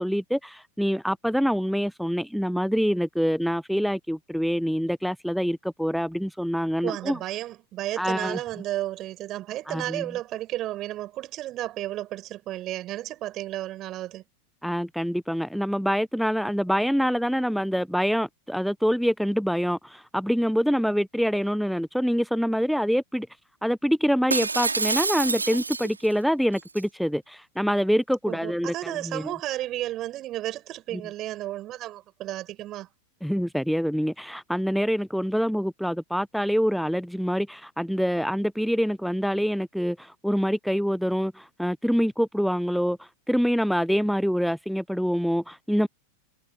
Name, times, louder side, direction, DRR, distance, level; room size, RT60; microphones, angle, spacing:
voice 1, 0.0-7.2 8.0-8.4 9.7-10.1 14.6-23.3 23.6-29.3 30.9-31.0 33.2-45.9, equal, ahead, 0.6 m, -25 dB
voice 2, 6.8-14.2 28.3-32.9, right 14 dB, 35° right, 7.0 m, -33 dB
Shatter, 24.3-26.1 26.6-26.8, right 4 dB, 80° right, 3.2 m, -27 dB
figure-of-eight pair, 90°, 0 cm